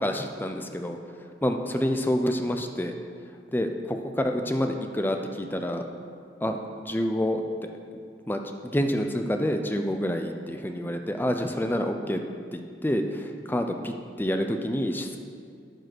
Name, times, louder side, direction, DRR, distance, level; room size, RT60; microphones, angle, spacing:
voice 1, 0.0-1.0 1.4-3.0 3.5-5.8 6.4-7.7 8.3-12.2 12.5-15.2, equal, 10° left, 5 dB, 0.5 m, -28 dB
12.0 x 5.4 x 6.0 m, 2.3 s
head